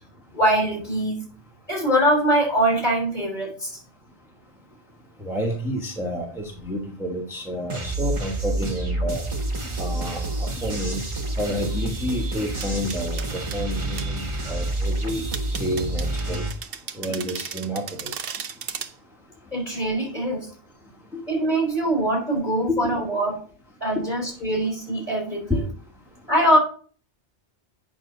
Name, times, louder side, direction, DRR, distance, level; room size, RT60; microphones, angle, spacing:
voice 1, 0.3-1.2 1.7-3.8 19.5-20.5 21.3-23.4 23.8-25.6 26.3-26.6, right 1 dB, 40° left, -2 dB, 3.8 m, -23 dB
voice 2, 5.2-9.2 9.8-11.0 11.4-15.3 15.6-16.4 16.9-18.1 21.1-21.2 22.7-22.8 23.9-24.0 25.5-25.6, equal, ahead, 0 dB, 1.3 m, -29 dB
sound 1, 7.7-16.5, right 2 dB, 25° right, 1.2 m, -28 dB
sound 2, 12.6-13.6 14.0-14.1 15.3-18.9, right 7 dB, 60° right, 0.9 m, -35 dB
8.6 x 6.1 x 3.9 m, 0.43 s
omnidirectional pair, 1.2 m